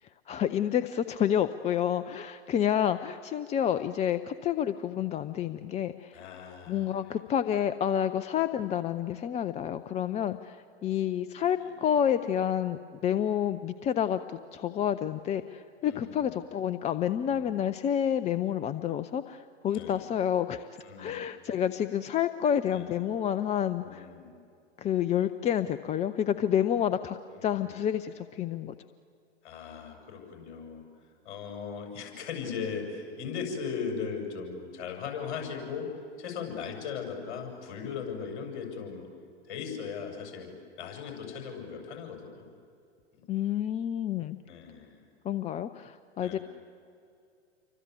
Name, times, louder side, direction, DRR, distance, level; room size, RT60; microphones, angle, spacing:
voice 1, 0.0-6.2 6.7-20.7 21.0-24.1 24.8-28.7 43.3-44.4 45.2-46.4, left 9 dB, 20° left, 12 dB, 0.6 m, -29 dB
voice 2, 6.1-6.9 11.6-11.7 15.8-16.3 17.3-17.6 19.7-20.0 20.8-21.2 22.7-22.9 23.8-24.3 27.3-27.7 29.4-30.8 31.2-35.9 36.2-39.1 39.4-40.5 40.8-42.5 43.1-43.2 44.4-45.0 46.2-46.4, left 6 dB, 45° left, 3 dB, 7.6 m, -38 dB
29.0 x 24.5 x 8.4 m, 2.4 s
hypercardioid pair, 105°, 34 cm